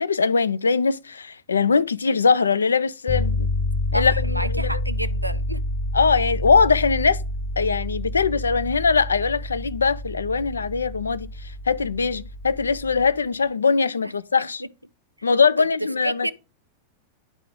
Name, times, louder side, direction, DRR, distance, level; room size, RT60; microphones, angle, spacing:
voice 1, 0.0-3.5 3.9-4.8 5.9-7.2 7.6-14.6 15.2-16.3, left 5 dB, 75° left, 0.3 m, -21 dB
sound 1, 3.1-13.2, left 1 dB, 45° left, 0.8 m, -28 dB
voice 2, 3.9-5.6 15.2-15.3 15.6-15.7 16.0-16.3, right 1 dB, 90° right, 0.3 m, -29 dB
10.5 x 3.7 x 3.5 m
figure-of-eight pair, 90°, 0 cm